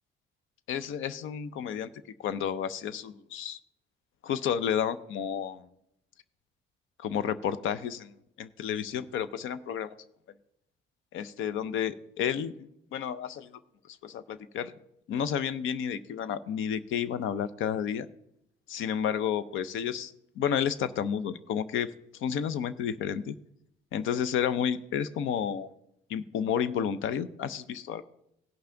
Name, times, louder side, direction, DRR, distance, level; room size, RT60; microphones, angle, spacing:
voice 1, 0.7-1.9 2.2-3.6 4.2-5.7 7.0-8.1 8.4-9.9 11.1-13.6 13.9-14.7 15.1-18.1 18.7-23.4 23.9-25.7 26.1-28.0, left 8 dB, 85° left, 15 dB, 0.7 m, -31 dB
17.0 x 5.7 x 3.8 m, 0.77 s
cardioid pair, 90°, 20 cm